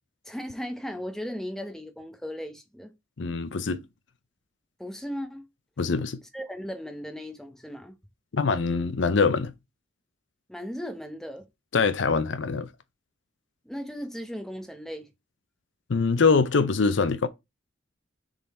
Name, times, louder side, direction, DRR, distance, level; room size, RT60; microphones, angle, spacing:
voice 1, 0.2-2.9 4.8-5.4 6.3-7.9 10.5-11.4 13.6-15.1, equal, ahead, 1.0 m, -36 dB
voice 2, 3.2-3.8 5.8-6.2 8.3-9.5 11.7-12.7 15.9-17.3, left 4 dB, 70° left, 0.6 m, -23 dB
6.8 x 3.9 x 4.3 m
head